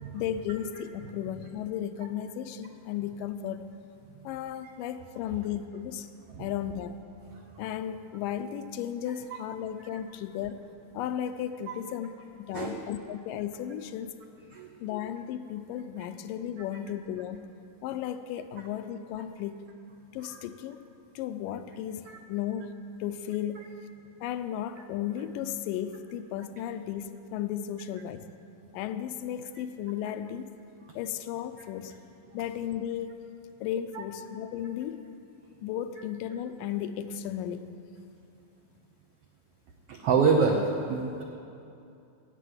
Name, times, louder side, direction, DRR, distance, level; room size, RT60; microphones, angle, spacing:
voice 1, 0.1-3.8 4.2-6.1 6.4-7.0 7.6-10.6 10.9-12.2 12.5-14.1 14.8-17.6 17.8-19.6 20.1-20.9 21.2-22.8 23.0-23.6 24.2-28.3 28.7-30.5 31.0-32.0 32.3-33.2 33.6-35.1 35.6-37.7, left 10 dB, 85° left, 10 dB, 2.3 m, -35 dB
voice 2, 39.9-40.6 40.9-41.2, right 5 dB, 80° right, 2 dB, 1.3 m, -26 dB
14.0 x 7.6 x 9.4 m, 2.7 s
omnidirectional pair, 3.8 m